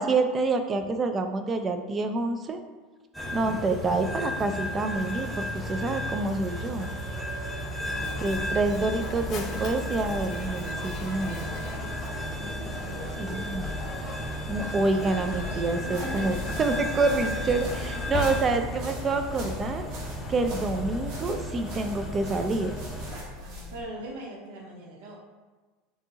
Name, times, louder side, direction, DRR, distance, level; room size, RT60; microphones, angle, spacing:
voice 1, 0.0-2.6 3.3-6.9 8.2-11.5 13.2-13.7 14.5-17.7 18.1-19.9 20.3-22.7, right 3 dB, 20° right, 7 dB, 0.4 m, -27 dB
sound 1, 3.1-23.1, equal, 5° left, 0.8 m, -35 dB
Mechanisms, 7.7-18.9, left 4 dB, 40° left, 0.6 m, -38 dB
voice 2, 7.8-9.5 12.4-13.7 14.6-15.2 15.5-16.6 17.2-18.3 23.4-25.2, right 2 dB, 75° right, -3 dB, 1.4 m, -43 dB
sound 2, 15.2-23.8, left 3 dB, 55° right, 1.3 m, -41 dB
4.7 x 2.8 x 3.9 m, 1.3 s
supercardioid pair, 145°, 0 cm